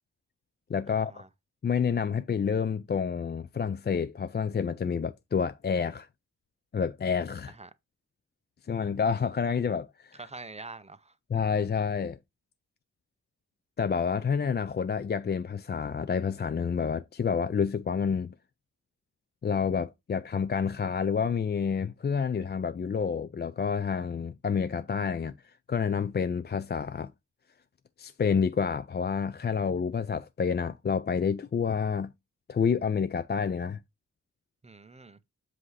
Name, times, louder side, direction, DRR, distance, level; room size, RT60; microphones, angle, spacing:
voice 1, 0.7-1.2 1.6-6.1 6.7-7.5 8.7-10.1 11.3-12.2 13.8-18.3 19.4-25.3 25.7-27.1 28.0-32.1 32.5-33.8, left 6 dB, 35° left, 0.4 m, -29 dB
voice 2, 10.1-11.1 34.6-35.2, right 3 dB, 20° right, 0.5 m, -45 dB
7.6 x 2.8 x 4.7 m
wide cardioid pair, 95°, 31 cm